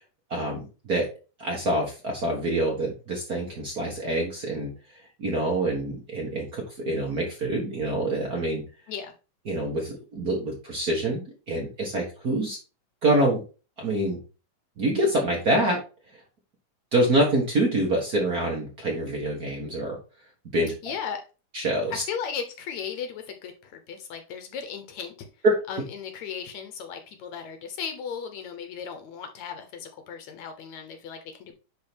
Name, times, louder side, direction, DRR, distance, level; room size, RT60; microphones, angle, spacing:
voice 1, 0.3-1.0 1.4-4.7 5.2-8.6 9.5-11.2 11.5-12.6 13.0-13.4 13.8-14.2 14.8-15.8 16.1-16.2 16.9-20.0 20.5-20.7 21.5-22.0 25.4-25.5, right 1 dB, 55° right, -1 dB, 1.0 m, -26 dB
voice 2, 20.8-21.2 22.1-25.3 25.7-31.5, left 7 dB, 70° left, 6 dB, 1.9 m, -36 dB
10.5 x 3.8 x 3.4 m, 0.33 s
omnidirectional pair, 3.9 m